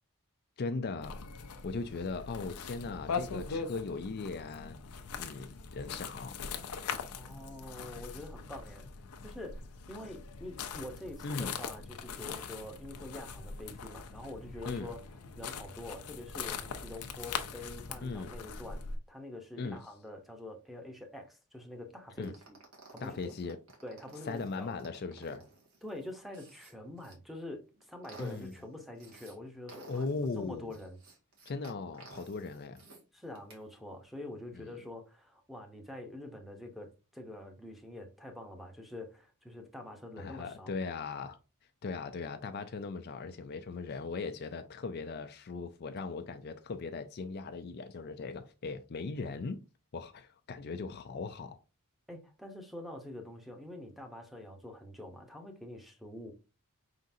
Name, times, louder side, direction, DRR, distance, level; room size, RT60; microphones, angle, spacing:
voice 1, 0.6-1.3 1.6-4.8 5.2-6.4 11.2-11.5 14.7-14.9 18.0-18.3 19.6-19.8 22.2-22.3 23.0-23.6 24.3-25.5 28.2-28.5 29.9-30.7 31.5-32.8 34.6-34.7 40.2-41.4 41.8-49.6 49.9-51.6, left 4 dB, 45° left, 0.4 m, -38 dB
sound 1, 1.0-19.0, left 5 dB, 85° left, 0.6 m, -41 dB
voice 2, 7.1-8.9 9.2-15.0 15.4-22.6 22.9-23.3 23.8-24.7 25.8-30.0 30.4-31.0 33.1-40.7 52.1-56.3, left 1 dB, ahead, 0.9 m, -46 dB
sound 2, 22.2-27.1 27.6-29.3 29.7-33.0 33.3-33.6, right 3 dB, 70° right, 1.6 m, -55 dB
5.1 x 3.8 x 2.7 m
head